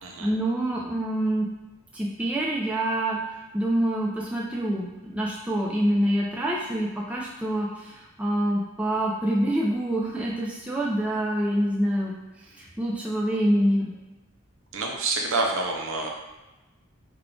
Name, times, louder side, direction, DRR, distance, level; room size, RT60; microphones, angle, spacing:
voice 1, 0.2-1.5 1.9-12.1 12.6-13.9, right 1 dB, 5° right, -4 dB, 0.3 m, -26 dB
voice 2, 14.7-16.1, right 3 dB, 75° right, 1 dB, 0.6 m, -27 dB
3.6 x 2.3 x 3.6 m, 1.1 s
head